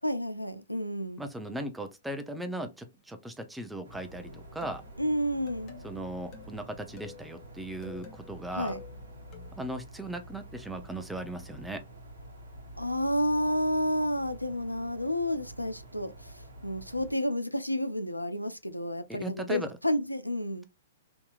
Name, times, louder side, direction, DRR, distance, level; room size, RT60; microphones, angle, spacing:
voice 1, 0.0-1.2 5.0-5.7 8.6-8.8 12.8-20.6, equal, 90° left, 0.5 m, -30 dB
voice 2, 1.2-4.8 5.8-8.7 9.6-11.8 19.1-19.7, right 1 dB, 5° right, 0.5 m, -38 dB
sound 1, 3.8-17.2, right 1 dB, 60° right, 0.9 m, -48 dB
sound 2, 4.2-9.7, left 7 dB, 30° left, 1.2 m, -51 dB
3.5 x 2.8 x 2.3 m
figure-of-eight pair, 115°, 0 cm